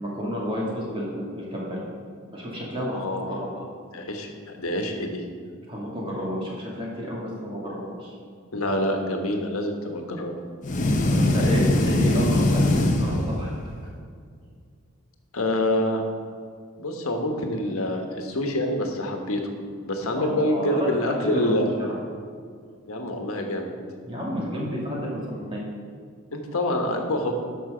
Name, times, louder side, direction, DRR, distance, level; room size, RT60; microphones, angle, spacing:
voice 1, 0.0-1.8 2.3-3.6 5.7-8.1 11.1-13.6 20.1-21.5 24.0-25.6, equal, 25° right, -5 dB, 2.4 m, -31 dB
voice 2, 2.9-3.4 3.9-4.3 4.6-5.2 8.5-10.3 15.3-16.0 16.8-19.5 19.8-21.7 22.9-23.7 26.3-27.3, left 1 dB, 85° left, 3 dB, 1.3 m, -26 dB
sound 1, 10.6-13.8, left 1 dB, 35° left, 0.8 m, -21 dB
12.5 x 6.2 x 5.0 m, 2.2 s
head